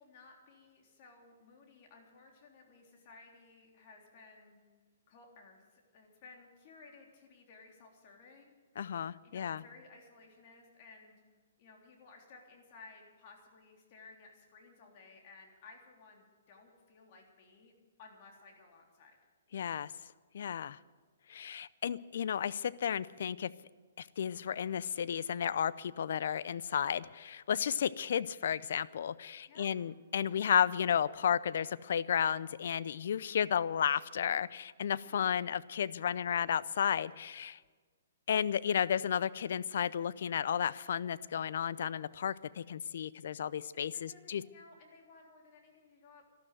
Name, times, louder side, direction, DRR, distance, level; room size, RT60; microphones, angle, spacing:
voice 1, 0.0-4.6 5.1-8.5 9.2-11.2 11.6-17.7 18.0-19.2 29.5-29.8 35.0-35.5 42.6-42.7 43.7-46.2, left 4 dB, 45° left, 1 dB, 3.5 m, -57 dB
voice 2, 8.8-9.6 19.5-19.9 20.3-20.8 21.3-23.5 24.0-37.6 38.3-44.4, left 8 dB, 65° left, 19 dB, 0.5 m, -33 dB
12.5 x 12.5 x 9.1 m, 1.4 s
hypercardioid pair, 140°, 0 cm